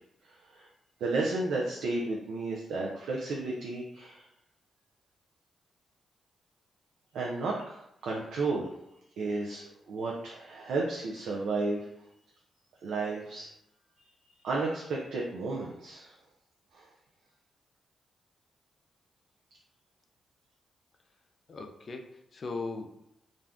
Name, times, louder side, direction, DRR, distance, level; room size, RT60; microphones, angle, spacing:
voice 1, 0.2-0.7 1.0-4.2 7.1-8.7 9.2-11.9 12.8-13.5 14.4-16.2 16.7-16.9, right 3 dB, 80° right, -2 dB, 0.4 m, -33 dB
voice 2, 21.5-23.0, left 3 dB, 55° left, 4 dB, 0.5 m, -39 dB
2.5 x 2.3 x 3.4 m, 0.81 s
supercardioid pair, 50°, 0 cm